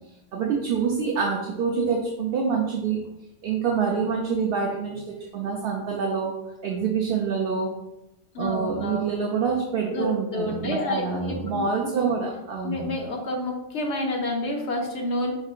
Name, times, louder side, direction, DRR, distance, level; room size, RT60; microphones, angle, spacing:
voice 1, 0.3-3.0 3.4-6.3 6.6-7.7 8.4-12.8, right 5 dB, 60° right, 0 dB, 0.7 m, -26 dB
voice 2, 8.3-9.0 9.9-11.9 12.6-15.3, left 1 dB, 60° left, 1 dB, 1.1 m, -29 dB
4.7 x 4.5 x 2.4 m, 0.94 s
omnidirectional pair, 1.4 m